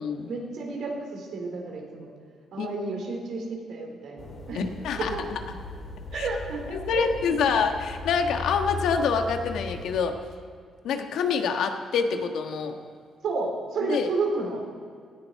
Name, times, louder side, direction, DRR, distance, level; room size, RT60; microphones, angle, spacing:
voice 1, 0.3-2.1 2.5-4.6 5.0-5.2 6.1-7.3 13.2-14.6, right 3 dB, 75° right, 1 dB, 3.9 m, -31 dB
sound 1, 4.2-10.0, left 3 dB, 45° left, 3.4 m, -38 dB
voice 2, 4.5-5.4 6.1-6.3 6.7-10.1 10.8-12.7 13.8-14.1, left 6 dB, 80° left, 5 dB, 1.4 m, -26 dB
18.5 x 13.5 x 4.7 m, 2.2 s
cardioid pair, 90°, 0 cm